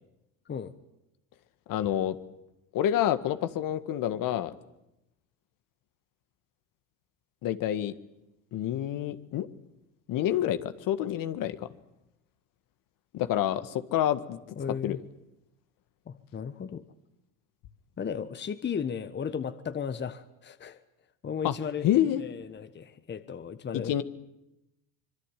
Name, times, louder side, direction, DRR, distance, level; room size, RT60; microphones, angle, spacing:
voice 1, 1.7-2.2 2.7-4.5 7.4-7.9 8.5-9.5 10.1-11.7 13.1-14.4 14.8-15.0 21.4-21.5 21.8-22.2 23.9-24.0, left 11 dB, 55° left, 11 dB, 1.8 m, -28 dB
voice 2, 14.6-15.0 16.1-16.8 18.0-20.8 21.2-21.9 22.2-24.0, left 7 dB, 25° left, 12 dB, 1.4 m, -35 dB
25.5 x 22.5 x 9.2 m, 0.89 s
supercardioid pair, 100°, 39 cm